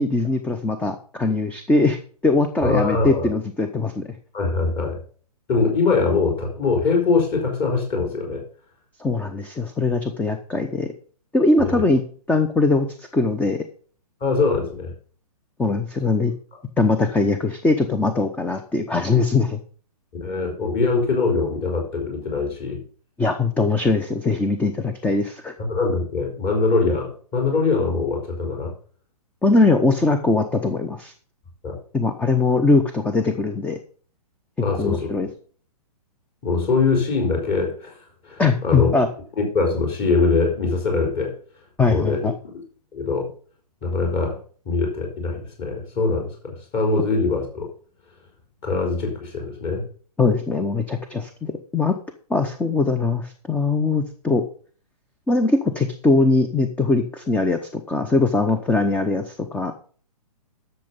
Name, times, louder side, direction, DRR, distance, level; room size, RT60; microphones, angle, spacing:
voice 1, 0.0-4.0 9.0-10.9 11.3-12.0 12.3-13.6 15.6-16.3 16.8-19.6 23.2-25.5 29.4-31.1 31.9-33.8 34.7-35.3 38.4-39.1 41.8-42.3 50.2-52.0 52.3-54.4 55.3-59.7, left 3 dB, 5° left, 8 dB, 0.8 m, -21 dB
voice 2, 2.6-3.3 4.3-5.0 5.5-8.4 11.6-11.8 14.2-14.9 20.2-22.8 25.7-28.7 31.6-31.8 34.6-35.1 36.4-38.0 38.2-38.9 39.4-41.3 41.9-42.3 42.9-43.3 43.8-44.4 44.7-47.7 48.6-49.8, left 4 dB, 30° left, 0 dB, 4.2 m, -22 dB
12.0 x 6.8 x 5.4 m, 0.43 s
hypercardioid pair, 125°, 20 cm